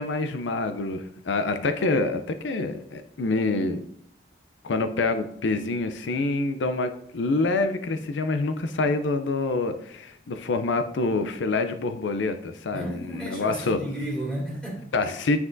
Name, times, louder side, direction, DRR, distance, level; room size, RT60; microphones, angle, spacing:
voice 1, 0.0-3.8 4.6-13.8 14.9-15.4, left 3 dB, 85° left, 8 dB, 0.5 m, -26 dB
voice 2, 12.7-15.1, equal, 5° left, -5 dB, 2.4 m, -33 dB
9.5 x 6.0 x 2.6 m, 0.70 s
head